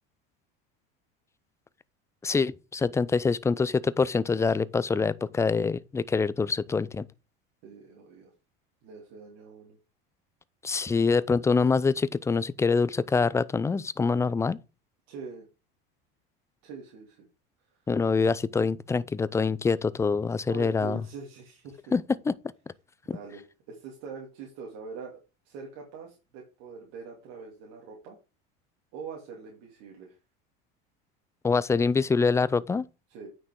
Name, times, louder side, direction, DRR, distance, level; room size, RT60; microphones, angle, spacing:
voice 1, 2.2-7.0 10.6-14.6 17.9-21.0 21.9-22.3 31.4-32.9, left 4 dB, 10° left, 0.3 m, -25 dB
voice 2, 7.6-8.3 8.8-9.8 15.1-15.4 16.6-17.3 20.5-21.8 23.1-25.1 25.4-28.2 28.9-30.1 33.1-33.3, right 5 dB, 65° right, 2.8 m, -43 dB
8.8 x 6.1 x 3.6 m
supercardioid pair, 115°, 29 cm